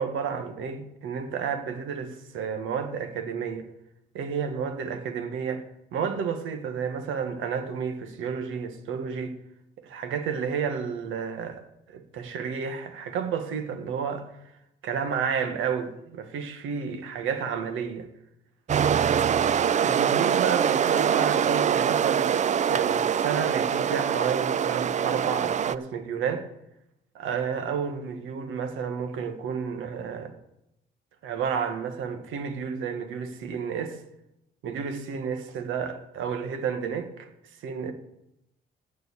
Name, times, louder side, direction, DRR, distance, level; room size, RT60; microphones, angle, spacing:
voice 1, 0.0-3.6 4.1-5.6 5.9-9.3 9.8-11.6 11.9-14.3 14.8-18.1 19.8-26.5 27.1-30.3 31.2-34.0 34.6-37.1 37.6-37.9, right 6 dB, 85° right, 1.4 m, -31 dB
sound 1, 18.7-25.8, right 8 dB, 35° right, 0.4 m, -24 dB
9.0 x 7.0 x 8.4 m
cardioid pair, 90°, 20 cm